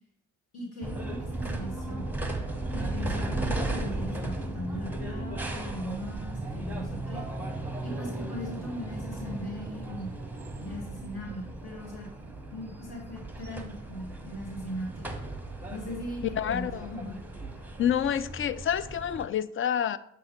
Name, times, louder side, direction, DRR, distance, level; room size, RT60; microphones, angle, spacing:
voice 1, 0.5-2.1 2.7-7.3 7.8-10.1 10.6-12.1 12.5-15.1 15.7-17.2, left 1 dB, 65° left, 2.6 m, -39 dB
sound 1, 0.8-19.3, right 2 dB, 5° right, 1.1 m, -36 dB
voice 2, 16.4-16.9 17.8-20.0, left 9 dB, 35° left, 0.4 m, -28 dB
7.3 x 3.2 x 5.1 m
hypercardioid pair, 45°, 39 cm